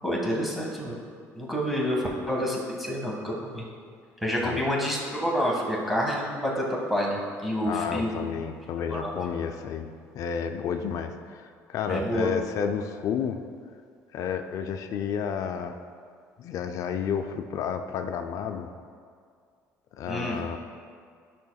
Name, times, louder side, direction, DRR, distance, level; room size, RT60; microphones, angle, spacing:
voice 1, 0.0-1.0 1.3-3.6 4.2-8.2 8.9-9.1 11.9-12.3 20.1-20.4, equal, ahead, -4 dB, 1.7 m, -28 dB
voice 2, 7.6-9.9 10.1-13.4 14.1-15.8 16.4-18.7 20.0-20.6, left 7 dB, 60° left, 6 dB, 0.5 m, -31 dB
11.0 x 5.7 x 2.3 m, 2.1 s
cardioid pair, 100°, 6 cm